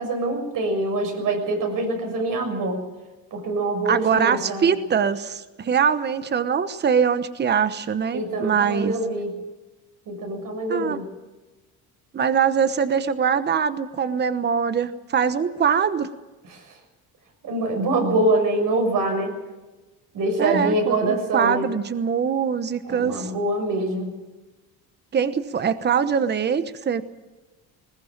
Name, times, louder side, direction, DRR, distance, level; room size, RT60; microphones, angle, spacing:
voice 1, 0.0-2.8 3.3-4.7 8.1-9.3 10.1-11.1 16.5-16.7 17.4-19.3 20.1-21.7 22.8-24.1, right 2 dB, 60° right, 4 dB, 6.7 m, -24 dB
voice 2, 3.9-8.9 10.7-11.0 12.1-16.1 20.4-23.3 25.1-27.0, right 7 dB, 30° right, 12 dB, 1.0 m, -23 dB
20.5 x 20.0 x 7.4 m, 1.2 s
cardioid pair, 140°, 37 cm